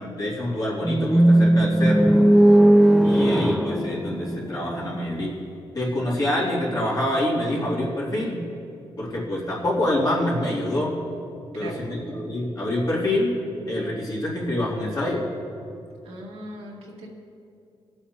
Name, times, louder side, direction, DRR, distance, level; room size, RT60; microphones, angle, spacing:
voice 1, 0.0-2.1 3.0-5.4 5.7-8.4 9.0-10.9 11.5-13.3 13.7-15.2, left 1 dB, 40° left, -7 dB, 2.9 m, -26 dB
sound 1, 0.8-4.9, right 1 dB, ahead, 0.4 m, -17 dB
voice 2, 16.0-17.1, right 1 dB, 90° right, -3 dB, 2.1 m, -38 dB
20.5 x 8.0 x 2.9 m, 2.5 s
cardioid pair, 100°, 10 cm